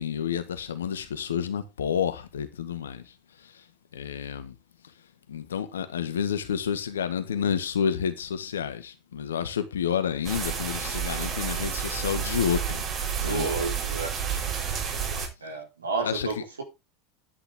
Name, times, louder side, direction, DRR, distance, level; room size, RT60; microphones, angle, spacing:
voice 1, 0.0-3.1 3.4-3.6 3.9-4.5 5.3-12.8 13.2-13.5 16.0-16.4, left 8 dB, 75° left, 1.7 m, -29 dB
sound 1, 10.2-15.3, right 7 dB, 40° right, 5.6 m, -30 dB
voice 2, 13.2-14.1 15.4-16.6, right 4 dB, 80° right, 4.2 m, -31 dB
11.0 x 9.8 x 3.8 m
figure-of-eight pair, 80°, 0 cm